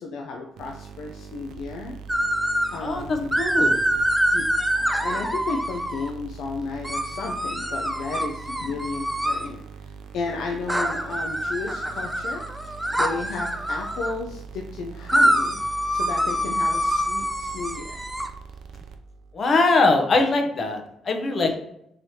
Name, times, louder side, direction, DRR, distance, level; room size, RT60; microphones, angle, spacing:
voice 1, 0.0-2.0 2.7-3.4 4.3-4.4 4.7-15.6 15.9-18.0 20.6-20.7 21.4-21.5, left 4 dB, 80° left, 1 dB, 0.4 m, -33 dB
sound 1, 0.6-19.3, right 6 dB, 80° right, 0.4 m, -42 dB
sound 2, 2.1-2.8 3.3-6.1 6.8-9.5 10.7-14.1 15.1-18.3, equal, 5° right, 0.4 m, -25 dB
voice 2, 2.8-3.8 19.3-21.5, left 3 dB, 45° left, 4 dB, 0.7 m, -22 dB
4.7 x 3.0 x 2.7 m, 0.77 s
cardioid pair, 90°, 0 cm